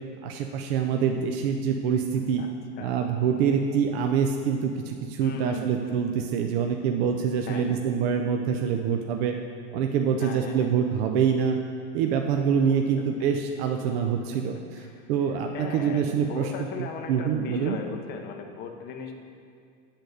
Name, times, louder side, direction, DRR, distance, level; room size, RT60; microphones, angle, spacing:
voice 1, 0.2-2.4 2.8-9.4 9.7-11.6 11.9-16.7 17.1-17.8, right 7 dB, 60° right, 4 dB, 0.5 m, -25 dB
voice 2, 2.4-3.0 5.2-6.0 7.5-7.8 10.2-10.7 12.6-13.0 14.5-15.1 15.5-19.2, left 6 dB, 30° left, 3 dB, 0.6 m, -38 dB
8.4 x 4.0 x 6.3 m, 2.3 s
supercardioid pair, 160°, 35 cm